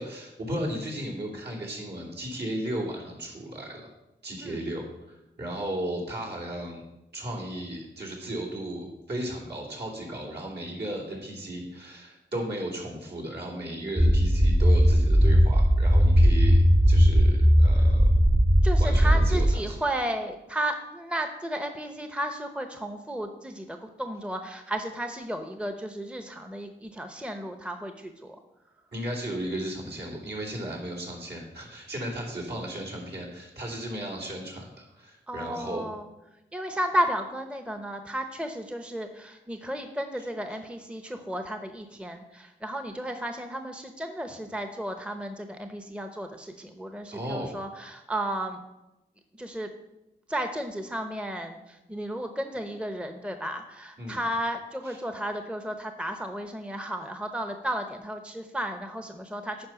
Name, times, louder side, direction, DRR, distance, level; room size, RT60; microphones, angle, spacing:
voice 1, 0.0-3.8 4.2-6.8 7.1-18.1 18.8-19.8 28.9-35.8 47.1-47.5 54.0-54.2 54.8-55.0, right 1 dB, 65° right, -3 dB, 3.0 m, -35 dB
sound 1, 14.0-19.5, equal, 25° right, 1.5 m, -19 dB
voice 2, 18.6-28.4 35.3-36.0 36.5-48.6 49.4-49.7 50.3-59.7, right 1 dB, 5° right, 7 dB, 0.8 m, -33 dB
10.5 x 4.7 x 5.8 m, 0.95 s
cardioid pair, 60°, 19 cm